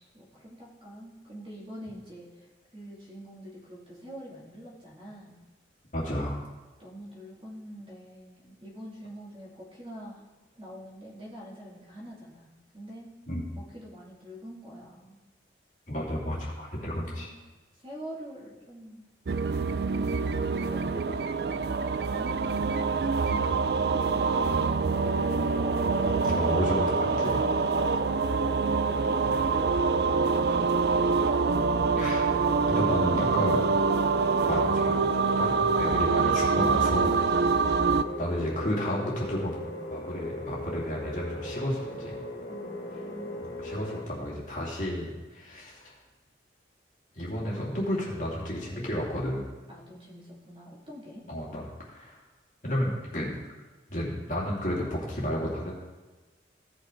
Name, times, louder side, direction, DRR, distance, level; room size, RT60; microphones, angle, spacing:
voice 1, 0.1-2.5 2.7-5.4 6.8-10.2 10.6-13.1 13.5-15.2 16.9-17.3 17.7-19.0 19.9-25.6 42.5-43.7 49.7-51.2, equal, 30° right, -5 dB, 2.6 m, -45 dB
voice 2, 5.9-6.4 13.3-13.4 15.9-17.3 26.0-27.4 32.0-32.3 32.7-33.6 34.5-37.2 38.2-39.6 39.9-42.1 43.4-45.9 47.1-49.5 51.3-52.2 52.6-53.4 53.9-55.7, equal, 45° left, -4 dB, 2.7 m, -32 dB
sound 1, 19.3-38.0, right 4 dB, 60° right, 0.4 m, -25 dB
sound 2, 24.9-44.0, left 1 dB, 75° left, 2.6 m, -38 dB
16.5 x 5.9 x 3.8 m, 1.2 s
head